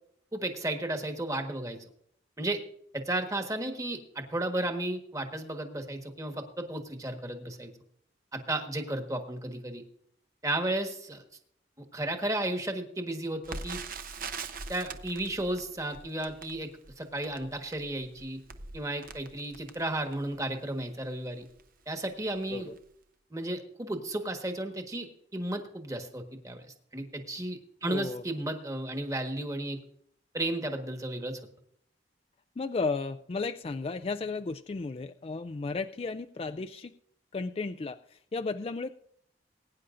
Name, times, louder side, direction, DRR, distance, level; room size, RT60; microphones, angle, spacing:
voice 1, 0.3-1.8 2.4-2.6 2.9-7.7 8.3-9.8 10.4-11.2 11.8-13.8 14.7-16.7 17.0-18.4 18.7-21.5 21.9-22.7 23.3-26.6 26.9-29.8 30.3-31.4, right 1 dB, 20° right, 5 dB, 1.4 m, -33 dB
Crackle, 13.4-20.4 21.0-21.1 21.4-21.7 22.3-22.5 22.8-22.9, right 4 dB, 50° right, 0.8 m, -43 dB
voice 2, 27.8-28.2 32.6-36.9 37.3-39.1, left 3 dB, 35° left, 9 dB, 0.3 m, -34 dB
21.5 x 9.9 x 2.5 m, 0.67 s
head